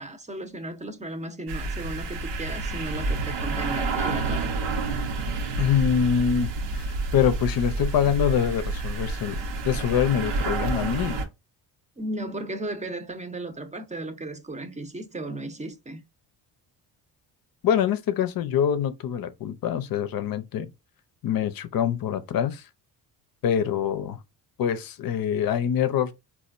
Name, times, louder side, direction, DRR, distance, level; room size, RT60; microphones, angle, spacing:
voice 1, 0.0-4.5 12.0-16.0, right 1 dB, 15° right, 0.7 m, -35 dB
sound 1, 1.5-11.2, right 3 dB, 75° right, 0.9 m, -29 dB
voice 2, 5.6-9.4 9.6-11.2 17.6-20.7 21.2-22.7 23.4-24.2 24.6-26.1, left 8 dB, 55° left, 0.7 m, -25 dB
4.2 x 2.4 x 2.4 m
supercardioid pair, 75°, 43 cm